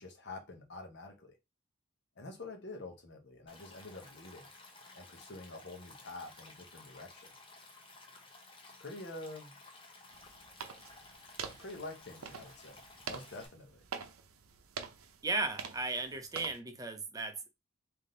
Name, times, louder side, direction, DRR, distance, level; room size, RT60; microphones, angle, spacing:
voice 1, 0.0-1.4 2.2-4.5 4.9-7.3 8.8-9.6 11.6-13.8, left 2 dB, 50° left, 0.9 m, -47 dB
Stream, 3.5-13.5, left 3 dB, 25° left, 0.7 m, -55 dB
sound 1, 10.1-16.6, right 6 dB, 80° right, 0.6 m, -46 dB
voice 2, 15.2-17.5, right 3 dB, 15° right, 0.6 m, -36 dB
3.6 x 2.7 x 3.8 m
head